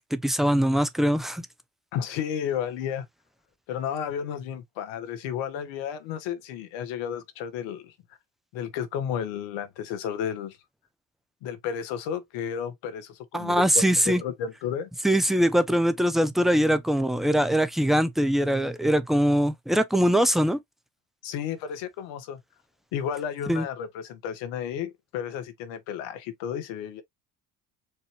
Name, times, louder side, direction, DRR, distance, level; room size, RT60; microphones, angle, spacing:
voice 1, 0.1-1.4 13.3-14.2 15.0-20.6 23.5-23.6, equal, ahead, 0.5 m, -22 dB
voice 2, 1.9-3.1 3.7-7.9 8.5-10.6 11.4-14.9 21.2-22.4 22.9-27.0, left 8 dB, 65° left, 0.9 m, -32 dB
4.5 x 2.5 x 2.9 m
hypercardioid pair, 60°, 48 cm